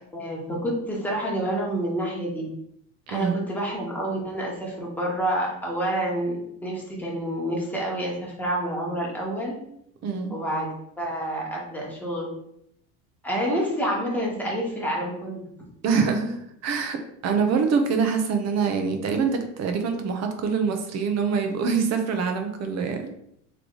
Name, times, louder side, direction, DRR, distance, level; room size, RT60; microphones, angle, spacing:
voice 1, 0.1-2.5 3.1-9.6 10.3-12.3 13.2-15.5, right 1 dB, 5° left, -4 dB, 1.3 m, -28 dB
voice 2, 15.8-17.0 17.2-23.1, right 5 dB, 45° right, 5 dB, 0.8 m, -25 dB
3.4 x 3.3 x 3.8 m, 0.74 s
supercardioid pair, 120°, 38 cm